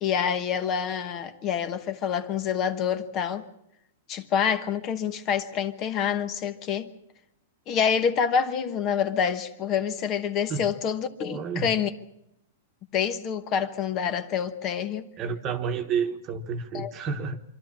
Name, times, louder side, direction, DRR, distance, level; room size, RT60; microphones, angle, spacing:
voice 1, 0.0-3.5 4.1-6.9 7.7-11.9 12.9-15.0 16.7-16.9, left 7 dB, 30° left, 1.0 m, -27 dB
voice 2, 11.3-11.7 15.2-17.4, right 6 dB, 25° right, 1.3 m, -30 dB
25.5 x 12.5 x 8.7 m
supercardioid pair, 160°, 0 cm